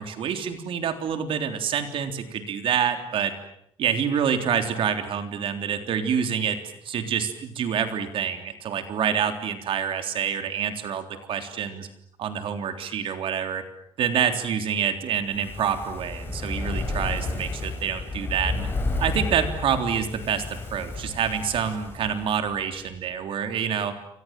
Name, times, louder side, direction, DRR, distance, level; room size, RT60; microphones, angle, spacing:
voice 1, 0.0-3.3 3.8-6.6 6.9-11.9 12.2-13.6 14.0-18.7 19.0-23.9, right 8 dB, 65° right, 7 dB, 3.6 m, -27 dB
Fire, 15.2-22.6 22.9-23.0, left 2 dB, 20° left, 7.4 m, -31 dB
29.0 x 26.5 x 7.7 m, 0.72 s
cardioid pair, 160°, 10 cm